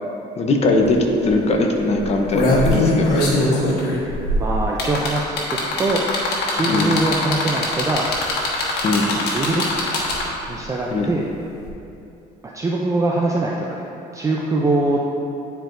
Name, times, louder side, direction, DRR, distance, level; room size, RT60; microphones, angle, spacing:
voice 1, 0.4-1.0 1.2-3.2 6.7-6.9 8.8-9.1 10.9-11.1, left 2 dB, 40° left, 2 dB, 0.8 m, -20 dB
sound 1, 0.8-0.9 1.2-1.5 2.0-10.5 11.6-11.7, left 2 dB, 75° left, 1.3 m, -21 dB
voice 2, 2.9-3.8 4.4-6.0 6.5-8.1 9.2-9.9 10.5-11.3 12.5-15.0, right 2 dB, 20° right, -2 dB, 0.4 m, -23 dB
10.0 x 4.5 x 2.6 m, 2.8 s
cardioid pair, 110°, 17 cm